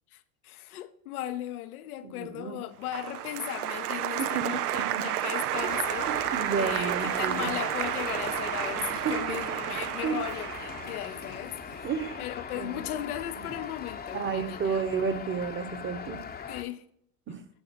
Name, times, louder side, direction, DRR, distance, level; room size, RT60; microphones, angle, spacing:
voice 1, 0.1-6.1 6.5-11.9 12.2-14.8 16.5-16.8, left 13 dB, 80° left, 0.8 m, -37 dB
voice 2, 2.0-2.6 4.2-4.3 4.5-5.0 6.1-7.5 9.0-9.6 10.0-10.2 11.8-12.2 12.5-13.0 14.1-16.2 17.3-17.4, right 6 dB, 25° right, 1.1 m, -32 dB
Applause, 2.9-11.9, right 12 dB, 90° right, 0.6 m, -31 dB
sound 1, 5.5-16.6, left 7 dB, 20° left, 0.8 m, -40 dB
9.0 x 6.5 x 4.5 m
hypercardioid pair, 85°, 44 cm